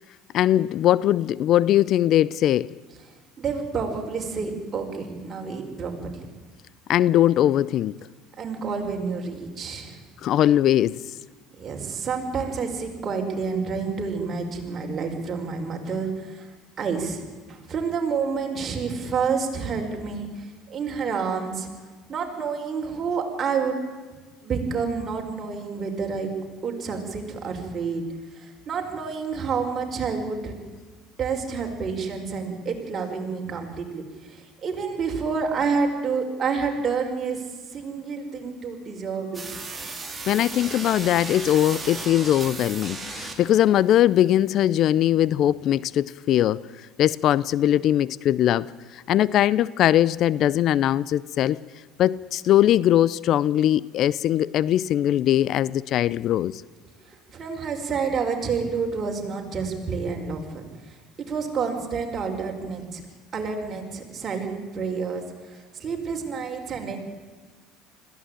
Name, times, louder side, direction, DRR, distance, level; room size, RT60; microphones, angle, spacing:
voice 1, 0.3-2.7 6.9-7.9 10.2-11.0 40.3-46.7 47.0-51.6 52.0-56.6, left 12 dB, 55° left, 0.5 m, -21 dB
voice 2, 3.4-6.3 8.4-10.0 11.6-21.7 22.1-23.8 24.4-26.3 26.6-28.0 28.3-30.5 31.2-37.4 37.7-39.4 40.2-40.4 57.1-61.0 61.3-63.0 63.3-67.0, right 5 dB, 35° right, 5.1 m, -29 dB
sound 1, 39.3-43.7, right 3 dB, 20° right, 3.9 m, -35 dB
21.0 x 15.5 x 9.0 m
supercardioid pair, 90°, 0 cm